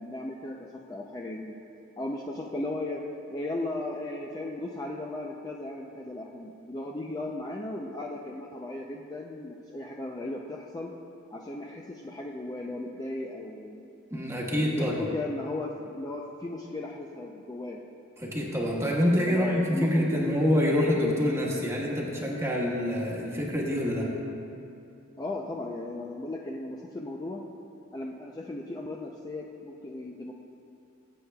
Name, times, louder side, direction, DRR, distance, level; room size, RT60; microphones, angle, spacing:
voice 1, 0.0-1.6 2.0-3.0 3.3-10.9 11.3-13.9 14.5-17.8 19.2-20.4 25.2-27.4 27.9-30.3, left 2 dB, 20° left, -1 dB, 0.4 m, -36 dB
voice 2, 14.1-15.0 18.2-24.1, equal, 15° right, -3 dB, 1.3 m, -26 dB
19.0 x 8.1 x 2.3 m, 2.6 s
head